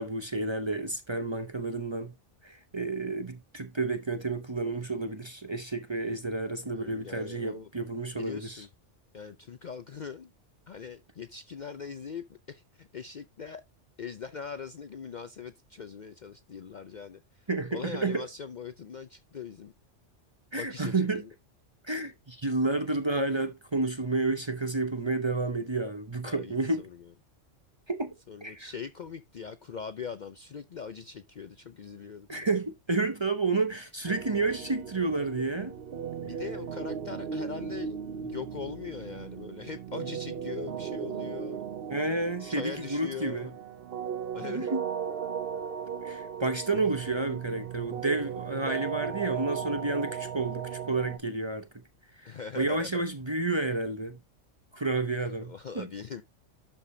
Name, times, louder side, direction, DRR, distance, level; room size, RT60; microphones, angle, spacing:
voice 1, 0.0-2.1 2.4-8.6 17.5-18.3 20.5-21.2 21.9-26.9 27.9-28.1 28.4-28.7 32.3-35.7 41.9-43.5 44.4-44.9 46.0-51.7 52.2-54.2 54.7-55.9, right 3 dB, 25° right, 0.7 m, -30 dB
voice 2, 6.6-7.7 8.1-8.7 9.1-10.3 10.7-13.6 14.0-19.7 20.6-21.3 26.2-27.0 28.3-32.5 36.2-38.0 38.2-41.6 42.5-43.5 44.3-44.7 52.2-53.0 55.4-56.2, left 6 dB, 50° left, 0.6 m, -41 dB
sound 1, 34.1-51.2, right 7 dB, 55° right, 1.0 m, -37 dB
11.5 x 5.0 x 2.7 m
omnidirectional pair, 1.3 m